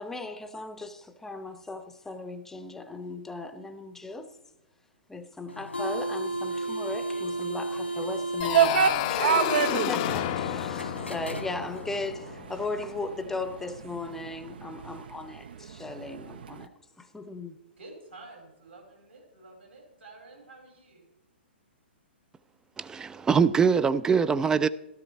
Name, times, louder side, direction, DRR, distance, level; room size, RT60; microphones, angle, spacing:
voice 1, 0.0-4.3 5.1-17.6, left 2 dB, 5° left, 0.8 m, -37 dB
sound 1, 5.5-11.9, right 1 dB, 90° left, 1.9 m, -34 dB
sound 2, 8.4-13.1, left 13 dB, 40° left, 0.6 m, -31 dB
sound 3, 8.4-16.6, right 8 dB, 60° right, 0.6 m, -29 dB
voice 2, 17.8-21.1, right 2 dB, 80° right, 5.4 m, -50 dB
voice 3, 22.8-24.7, right 6 dB, 10° right, 0.3 m, -23 dB
13.0 x 13.0 x 4.2 m
figure-of-eight pair, 115°, 6 cm